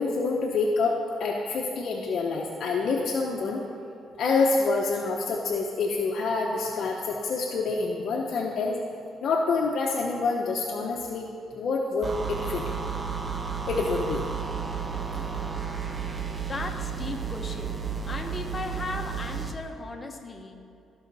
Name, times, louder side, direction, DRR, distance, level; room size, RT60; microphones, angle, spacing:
voice 1, 0.0-3.6 4.2-8.7 9.2-11.3 11.5-12.7 13.7-14.3 15.1-15.2, left 4 dB, 65° left, -2 dB, 0.9 m, -27 dB
sound 1, 12.0-19.6, right 6 dB, 30° right, 0.8 m, -32 dB
voice 2, 16.3-20.6, left 3 dB, 30° left, 3 dB, 1.1 m, -37 dB
16.5 x 5.7 x 4.1 m, 2.5 s
cardioid pair, 90°, 0 cm